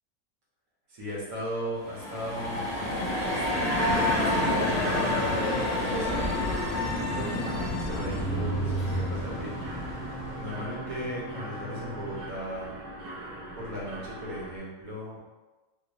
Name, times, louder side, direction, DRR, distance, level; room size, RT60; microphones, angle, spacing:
voice 1, 0.9-6.4 7.0-9.6 10.2-12.7 13.5-15.2, equal, 85° right, -5 dB, 1.4 m, -37 dB
sound 1, 1.8-10.5, left 1 dB, 45° left, 1.0 m, -29 dB
sound 2, 6.8-12.3, right 3 dB, 35° right, 0.7 m, -41 dB
Mechanisms, 7.9-14.6, right 2 dB, 65° right, 0.4 m, -36 dB
3.1 x 2.5 x 3.0 m, 1.1 s
omnidirectional pair, 1.4 m